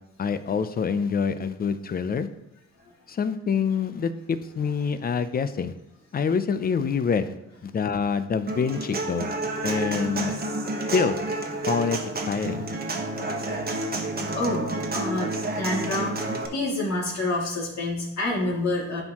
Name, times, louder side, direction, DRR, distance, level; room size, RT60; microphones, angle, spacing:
voice 1, 0.2-2.3 3.1-5.7 6.1-7.3 7.6-9.3 9.6-10.4 10.9-11.2 11.7-12.7, left 6 dB, 30° left, 12 dB, 0.5 m, -26 dB
Human voice / Acoustic guitar, 8.5-16.5, right 2 dB, 30° right, 1.2 m, -29 dB
voice 2, 14.3-16.2 16.5-19.0, left 2 dB, 60° left, -3 dB, 2.5 m, -28 dB
11.0 x 4.5 x 3.0 m, 0.91 s
cardioid pair, 90°, 30 cm